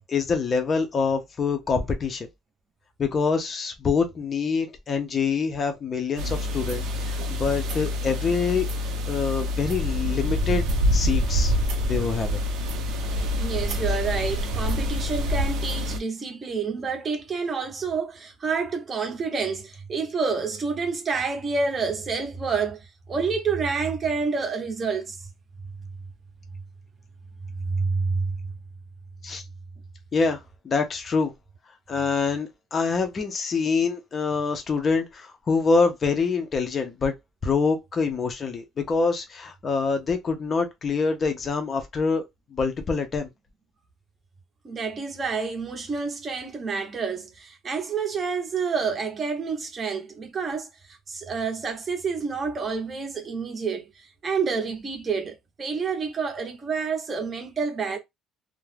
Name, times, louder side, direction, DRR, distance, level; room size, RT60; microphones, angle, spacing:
voice 1, 0.0-2.3 3.0-8.7 9.1-10.7 10.9-11.6 11.8-12.4 29.2-29.4 30.1-31.3 31.9-37.1 37.4-42.2 42.5-43.3, left 4 dB, 25° left, 0.4 m, -25 dB
sound 1, 6.2-16.0, left 1 dB, 65° right, 0.5 m, -26 dB
voice 2, 13.4-22.8 23.1-25.3 27.6-28.3 44.6-58.0, right 5 dB, 25° right, 0.6 m, -28 dB
2.3 x 2.0 x 3.2 m
cardioid pair, 170°, 0 cm